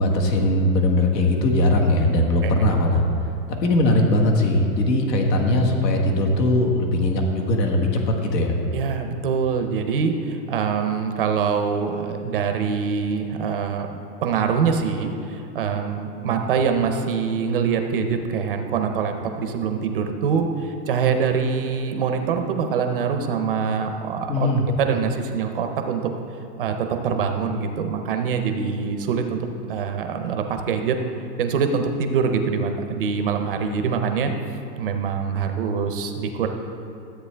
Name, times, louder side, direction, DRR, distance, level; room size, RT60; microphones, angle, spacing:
voice 1, 0.0-3.0 3.5-8.5 24.3-24.7, left 1 dB, 80° left, 2 dB, 1.6 m, -20 dB
voice 2, 8.7-24.5 24.8-26.0 26.6-31.0 31.4-34.3 34.8-36.5, right 6 dB, 35° right, 5 dB, 0.5 m, -24 dB
13.5 x 7.9 x 3.3 m, 2.7 s
supercardioid pair, 170°, 49 cm